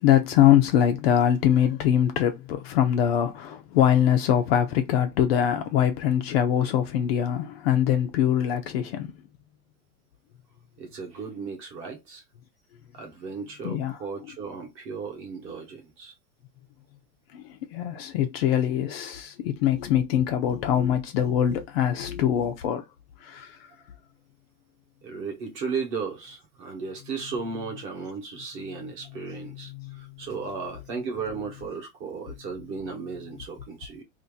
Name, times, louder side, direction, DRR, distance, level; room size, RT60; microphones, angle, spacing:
voice 1, 0.0-9.1 13.6-14.0 17.3-17.4 17.7-22.8 23.2-23.5 29.2-30.0, left 10 dB, 45° left, 0.5 m, -23 dB
voice 2, 10.8-12.2 12.9-16.1 25.0-29.7 30.0-34.0, right 5 dB, 25° right, 1.0 m, -35 dB
2.8 x 2.5 x 3.7 m
supercardioid pair, 160°, 44 cm